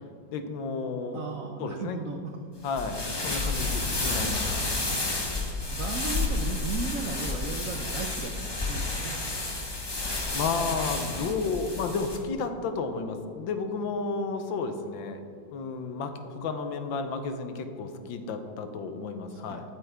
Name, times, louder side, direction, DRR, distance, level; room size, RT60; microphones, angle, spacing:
voice 1, 0.3-1.2 1.6-2.0 2.6-4.6 10.3-15.2 15.5-19.6, left 4 dB, 80° left, 7 dB, 1.6 m, -32 dB
voice 2, 1.1-2.4 5.7-9.2 19.3-19.6, right 5 dB, 70° right, 4 dB, 0.8 m, -36 dB
sound 1, 2.7-12.2, left 2 dB, 25° left, 0.5 m, -31 dB
12.0 x 8.7 x 3.5 m, 2.3 s
omnidirectional pair, 2.1 m